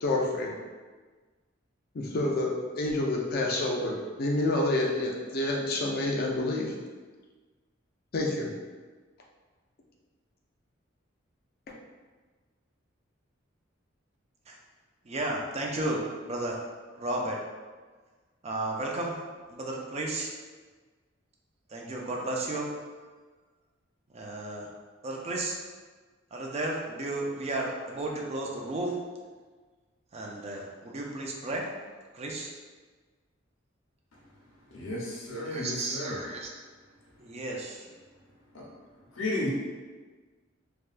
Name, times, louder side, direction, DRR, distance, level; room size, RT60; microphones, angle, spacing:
voice 1, 0.0-0.6 1.9-6.7 8.1-8.5, left 2 dB, 50° left, -1 dB, 0.5 m, -28 dB
voice 2, 15.1-16.6 16.9-17.4 18.4-20.3 21.7-22.8 24.1-24.7 25.0-25.6 26.3-29.0 30.1-31.7 32.1-32.5 35.5-36.5 37.2-37.9, right 2 dB, 35° right, -1 dB, 0.4 m, -33 dB
voice 3, 34.7-36.2 38.5-38.7 39.1-39.5, left 1 dB, 80° left, -4 dB, 0.8 m, -33 dB
3.3 x 2.3 x 2.4 m, 1.4 s
head